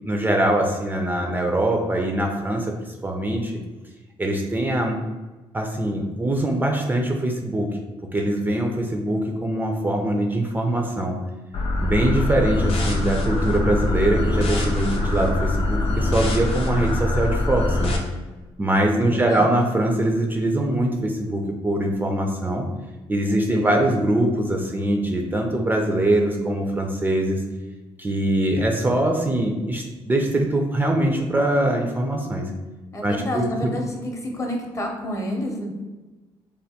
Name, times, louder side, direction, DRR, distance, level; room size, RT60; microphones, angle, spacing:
voice 1, 0.0-3.5 4.2-5.0 5.5-7.8 8.1-11.2 11.8-17.9 18.6-22.6 23.1-27.4 28.0-32.5 33.0-33.7, right 1 dB, 20° right, 2 dB, 0.3 m, -23 dB
sound 1, 11.5-18.0, left 2 dB, 65° left, 0.6 m, -23 dB
voice 2, 19.0-19.5 23.3-24.0 32.9-35.7, equal, 30° left, 1 dB, 0.7 m, -30 dB
3.2 x 2.2 x 2.7 m, 1.2 s
cardioid pair, 90°, 10 cm